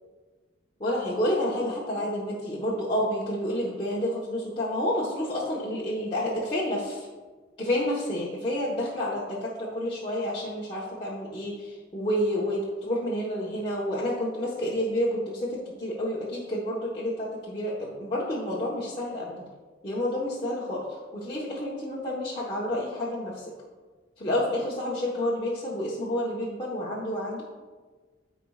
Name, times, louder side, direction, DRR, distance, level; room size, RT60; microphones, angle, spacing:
voice 1, 0.8-7.1 7.6-19.4 19.8-23.5 24.2-27.4, left 1 dB, 30° left, -8 dB, 1.2 m, -29 dB
13.5 x 4.6 x 2.4 m, 1.4 s
head